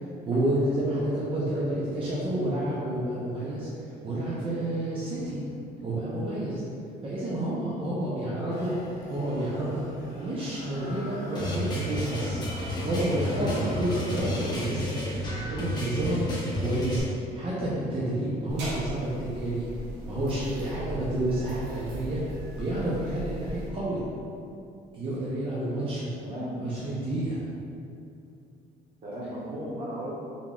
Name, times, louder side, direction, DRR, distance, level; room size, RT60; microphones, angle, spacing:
voice 1, 0.2-3.7 4.0-5.4 5.8-6.6 7.0-8.8 9.1-12.4 12.8-14.9 15.3-17.0 17.3-19.7 20.0-22.2 22.5-24.0 24.9-26.1 26.6-27.4, right 1 dB, 30° right, -8 dB, 0.7 m, -29 dB
voice 2, 7.2-7.6 8.1-8.5 26.2-26.5 29.0-30.1, equal, 55° right, -7 dB, 1.2 m, -37 dB
sound 1, 8.5-15.1, left 1 dB, 45° left, 1.1 m, -45 dB
sound 2, 11.4-17.0, equal, 25° left, 0.8 m, -31 dB
sound 3, 18.5-23.7, equal, 85° right, 0.9 m, -38 dB
3.8 x 3.6 x 2.3 m, 2.6 s
cardioid pair, 110°, 17 cm